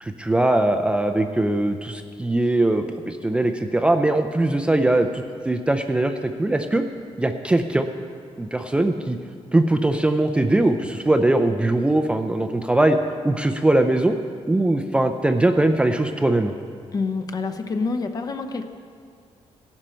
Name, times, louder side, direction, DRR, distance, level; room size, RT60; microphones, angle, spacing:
voice 1, 0.0-6.8 7.2-7.9 8.4-9.2 9.5-13.0 13.2-14.1 14.4-16.5, right 2 dB, 10° right, 6 dB, 0.4 m, -21 dB
voice 2, 16.9-18.7, left 4 dB, 35° left, 7 dB, 0.7 m, -27 dB
15.5 x 11.5 x 4.4 m, 2.3 s
wide cardioid pair, 160°, 11 cm